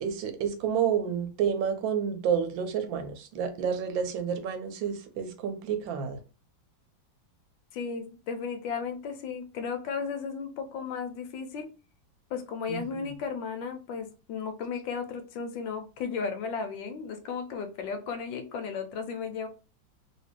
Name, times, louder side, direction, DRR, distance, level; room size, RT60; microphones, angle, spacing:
voice 1, 0.0-6.2 12.7-13.1, right 7 dB, 80° right, 1.4 m, -30 dB
voice 2, 7.7-11.7 12.3-19.5, left 5 dB, 80° left, 1.3 m, -35 dB
3.1 x 2.9 x 3.2 m
omnidirectional pair, 2.1 m